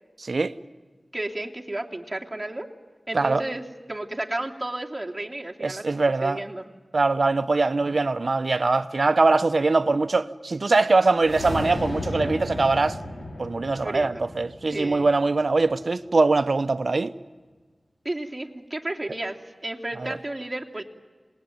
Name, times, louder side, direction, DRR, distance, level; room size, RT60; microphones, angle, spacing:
voice 1, 0.2-0.5 3.1-3.4 5.6-6.4 6.9-13.0 13.4-17.1 20.0-20.2, right 3 dB, 70° right, 0.8 m, -22 dB
voice 2, 1.1-2.7 3.1-6.6 13.8-14.2 14.7-15.1 18.0-20.8, right 1 dB, 25° right, 2.8 m, -33 dB
sound 1, 11.1-15.5, left 1 dB, 85° left, 4.1 m, -34 dB
27.5 x 20.0 x 9.2 m
cardioid pair, 40°, 0 cm